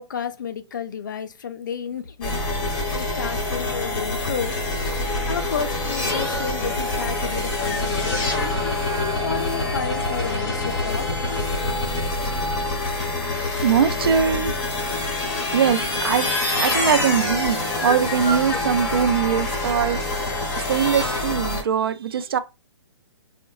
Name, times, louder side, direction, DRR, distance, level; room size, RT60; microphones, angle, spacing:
voice 1, 0.0-2.4 2.9-4.6 5.3-8.7 9.2-11.1, left 7 dB, 45° left, 0.4 m, -31 dB
sound 1, 2.2-21.6, left 2 dB, 15° left, 0.8 m, -25 dB
voice 2, 13.6-14.5 15.5-16.3 16.5-22.4, right 7 dB, 55° right, 0.4 m, -22 dB
3.6 x 2.1 x 2.3 m
hypercardioid pair, 175°, 14 cm